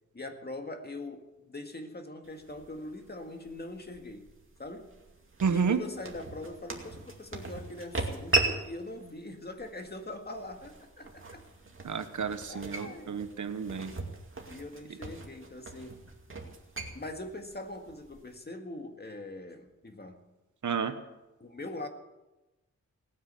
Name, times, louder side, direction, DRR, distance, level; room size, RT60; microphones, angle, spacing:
voice 1, 0.1-4.3 4.6-5.0 5.5-11.4 12.5-13.2 14.5-16.0 16.9-20.2 21.4-21.9, left 2 dB, 35° left, 5 dB, 1.9 m, -42 dB
sound 1, 2.2-18.3, right 2 dB, 45° right, 2.4 m, -38 dB
voice 2, 5.4-5.8 11.8-13.9 20.6-21.0, right 6 dB, 75° right, 9 dB, 1.2 m, -30 dB
18.5 x 9.6 x 6.8 m, 1.0 s
wide cardioid pair, 95°, 30 cm